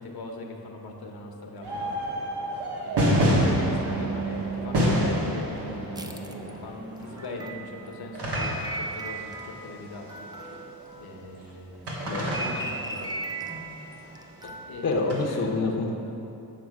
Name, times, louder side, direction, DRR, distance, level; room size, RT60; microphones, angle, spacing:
voice 1, 0.0-2.0 2.8-10.7 11.0-13.2 14.7-15.5, left 2 dB, 70° left, 2 dB, 0.9 m, -40 dB
sound 1, 1.6-10.9 11.9-13.7 15.1-15.2, equal, 85° right, 1.4 m, -28 dB
Harp, 3.3-6.7 7.1-8.2, right 7 dB, 40° right, 0.9 m, -37 dB
sound 2, 6.0-11.5 11.8-15.1, right 2 dB, 10° right, 0.3 m, -38 dB
voice 2, 14.8-15.9, left 3 dB, 40° left, 0 dB, 0.7 m, -27 dB
7.5 x 4.8 x 4.7 m, 2.9 s
wide cardioid pair, 105°, 39 cm